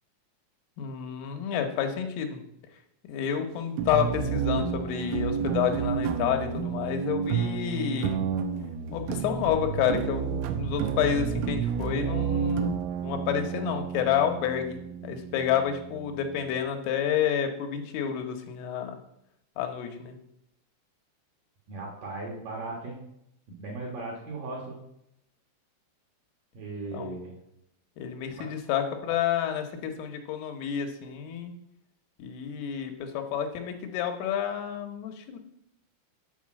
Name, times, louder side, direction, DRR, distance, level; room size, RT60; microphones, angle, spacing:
voice 1, 0.8-2.4 2.7-2.8 3.1-8.3 8.9-19.0 19.6-20.2 26.9-27.2 28.0-31.5 32.2-35.4, left 9 dB, 85° left, 5 dB, 3.6 m, -29 dB
sound 1, 3.8-16.6, right 7 dB, 90° right, 3.4 m, -31 dB
voice 2, 21.7-23.0 23.5-24.8 26.5-27.4 28.4-28.5, right 2 dB, 60° right, -2 dB, 2.3 m, -37 dB
7.9 x 4.9 x 7.4 m, 0.78 s
omnidirectional pair, 5.6 m